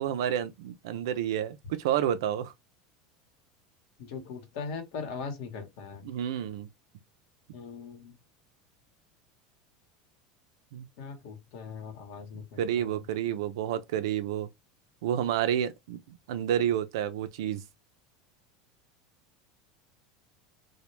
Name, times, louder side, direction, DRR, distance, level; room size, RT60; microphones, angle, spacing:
voice 1, 0.0-2.5 6.0-6.7 10.7-10.9 12.6-14.5 15.0-17.6, right 10 dB, 80° right, 0.4 m, -30 dB
voice 2, 4.0-6.1 7.5-8.2 11.0-13.0, left 5 dB, 70° left, 1.0 m, -40 dB
2.2 x 2.1 x 3.0 m
supercardioid pair, 120°, 2 cm